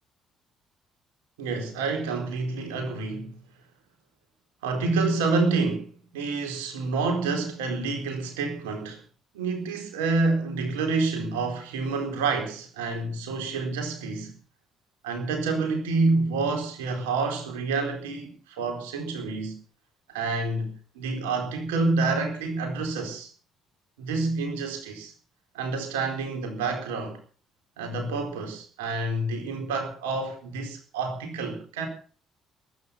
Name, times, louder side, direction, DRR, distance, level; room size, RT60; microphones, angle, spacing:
voice 1, 1.4-3.4 4.6-9.0 9.3-14.3 15.0-19.6 20.1-23.3 24.0-25.1 25.5-27.2 27.8-31.9, right 3 dB, 75° right, 4.2 m, -28 dB
22.5 x 9.5 x 5.9 m
figure-of-eight pair, 45°, 0 cm